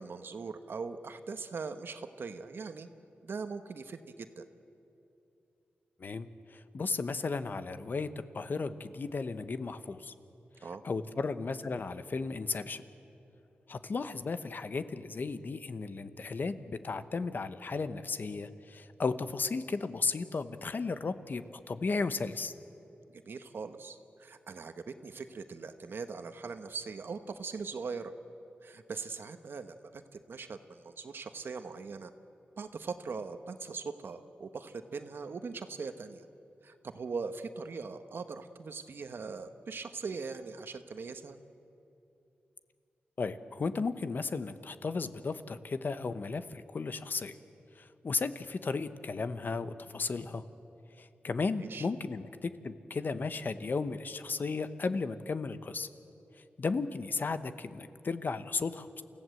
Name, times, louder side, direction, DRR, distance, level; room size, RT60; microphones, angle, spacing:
voice 1, 0.0-2.9 3.2-4.5 10.6-10.8 23.1-28.1 28.6-32.1 32.6-36.3 36.6-41.4 51.6-51.9, right 4 dB, 70° right, 9 dB, 1.2 m, -41 dB
voice 2, 6.0-8.1 8.3-10.1 10.8-12.8 13.7-22.5 43.2-47.3 47.8-50.4 51.0-55.9 56.4-59.0, left 4 dB, 55° left, 11 dB, 1.0 m, -35 dB
28.5 x 16.0 x 7.9 m, 2.8 s
cardioid pair, 70°, 4 cm